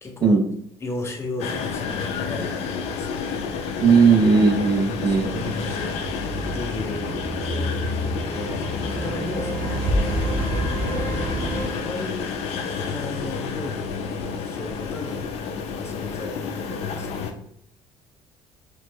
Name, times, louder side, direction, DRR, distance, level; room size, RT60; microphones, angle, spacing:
voice 1, 0.0-0.4 0.8-3.3 5.0-6.0 6.5-13.9 14.3-15.4 15.7-17.4, left 2 dB, 25° left, 1 dB, 0.7 m, -36 dB
sound 1, 1.4-17.3, left 5 dB, 75° left, 0.4 m, -30 dB
voice 2, 3.8-5.4, right 5 dB, 40° right, 3 dB, 0.6 m, -17 dB
sound 2, 4.7-11.7, right 1 dB, 80° right, 0.7 m, -28 dB
3.1 x 2.0 x 3.3 m, 0.74 s
cardioid pair, 100°, 11 cm